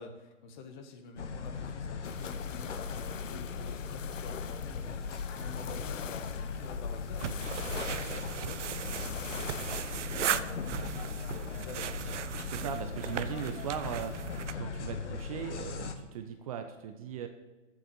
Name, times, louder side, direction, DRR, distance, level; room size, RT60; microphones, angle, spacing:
voice 1, 0.0-12.2, left 4 dB, 40° left, 5 dB, 1.5 m, -48 dB
sound 1, 1.2-15.9, left 5 dB, 65° left, 1.2 m, -39 dB
sound 2, 2.0-10.0, left 8 dB, 85° left, 0.6 m, -43 dB
sound 3, 7.2-14.5, right 9 dB, 70° right, 0.7 m, -37 dB
voice 2, 12.5-17.3, right 8 dB, 30° right, 7 dB, 0.6 m, -39 dB
8.1 x 7.3 x 6.9 m, 1.2 s
hypercardioid pair, 135°, 38 cm